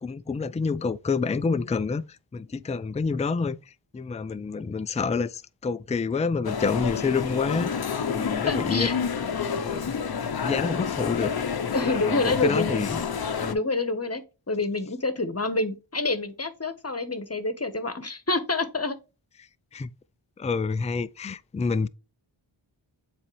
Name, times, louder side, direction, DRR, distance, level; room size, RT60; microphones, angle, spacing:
voice 1, 0.0-2.0 2.3-3.6 3.9-7.7 8.1-8.9 9.6-9.9 10.2-11.4 12.1-13.0 13.4-13.6 19.7-19.9 20.4-21.9, left 4 dB, 15° left, 0.4 m, -28 dB
sound 1, 6.4-13.5, left 6 dB, 50° left, 0.7 m, -29 dB
voice 2, 8.5-8.9 11.7-12.8 13.5-19.0, left 3 dB, 30° left, 1.1 m, -27 dB
7.3 x 4.2 x 3.2 m
cardioid pair, 45°, 46 cm